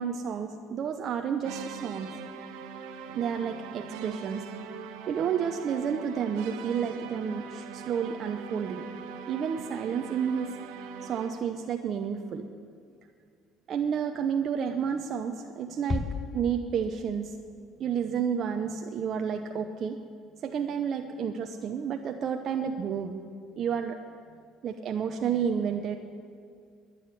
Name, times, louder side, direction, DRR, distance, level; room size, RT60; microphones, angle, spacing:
voice 1, 0.0-2.2 3.1-4.4 5.1-8.9 9.3-10.5 11.0-12.5 13.7-16.1 16.3-17.4 17.8-20.0 20.4-23.2 23.6-24.0 24.6-26.0, right 7 dB, 55° right, 5 dB, 0.7 m, -30 dB
sound 1, 1.4-11.5, right 6 dB, 80° right, 0.9 m, -41 dB
Bass drum, 15.9-17.3, left 3 dB, 25° left, 0.7 m, -34 dB
11.0 x 10.0 x 9.7 m, 2.2 s
supercardioid pair, 80°, 0 cm